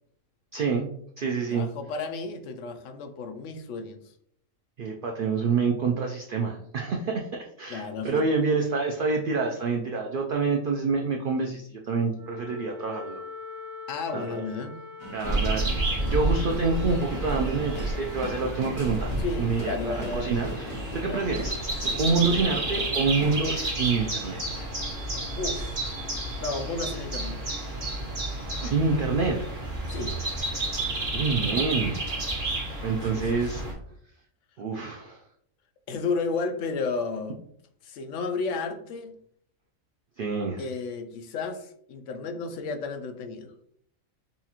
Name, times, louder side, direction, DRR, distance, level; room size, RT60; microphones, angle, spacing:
voice 1, 0.5-0.9 1.2-1.7 4.8-7.3 7.6-13.2 14.1-14.4 15.1-19.1 19.4-21.5 22.0-24.7 28.6-29.4 31.1-32.1 32.8-33.7 34.6-35.2 40.2-40.6, right 4 dB, 85° right, 2 dB, 0.4 m, -27 dB
voice 2, 1.5-4.0 7.7-8.2 13.9-14.8 19.2-20.4 21.0-21.3 25.4-25.8 26.4-27.4 29.9-30.2 33.1-33.4 35.9-37.4 37.8-39.1 40.6-43.5, left 4 dB, 65° left, 7 dB, 0.8 m, -32 dB
Wind instrument woodwind instrument, 12.1-18.4, left 4 dB, 65° right, 1.3 m, -43 dB
sound 1, 15.0-23.6, equal, 25° left, 0.8 m, -39 dB
sound 2, 15.2-33.7, right 2 dB, 40° right, 1.3 m, -31 dB
5.4 x 2.4 x 2.9 m, 0.67 s
omnidirectional pair, 1.5 m